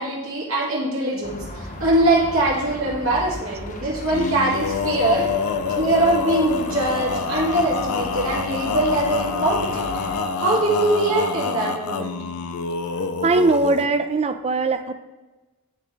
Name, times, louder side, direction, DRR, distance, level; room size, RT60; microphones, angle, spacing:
voice 1, 0.0-5.3 5.8-9.9 10.4-12.2, right 2 dB, 65° right, -5 dB, 2.1 m, -22 dB
sound 1, 1.2-10.2, left 1 dB, 35° left, 0.7 m, -36 dB
Male singing, 4.1-13.9, left 5 dB, 85° left, 0.5 m, -27 dB
voice 2, 13.2-14.9, right 3 dB, 30° right, 9 dB, 0.4 m, -20 dB
10.0 x 3.5 x 3.1 m, 1.2 s
head